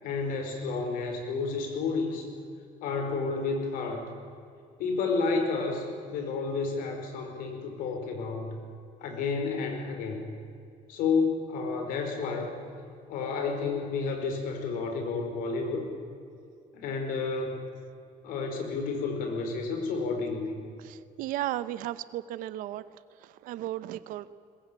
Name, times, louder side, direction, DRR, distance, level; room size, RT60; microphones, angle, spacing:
voice 1, 0.0-2.3 2.8-4.1 4.8-8.6 9.0-10.3 10.9-12.5 13.1-15.9 16.7-17.5 18.2-20.6, left 4 dB, 80° left, 4 dB, 5.0 m, -31 dB
voice 2, 20.8-22.8 23.2-24.3, right 14 dB, 70° right, 15 dB, 0.9 m, -35 dB
22.0 x 21.5 x 8.9 m, 2.4 s
cardioid pair, 175°, 14 cm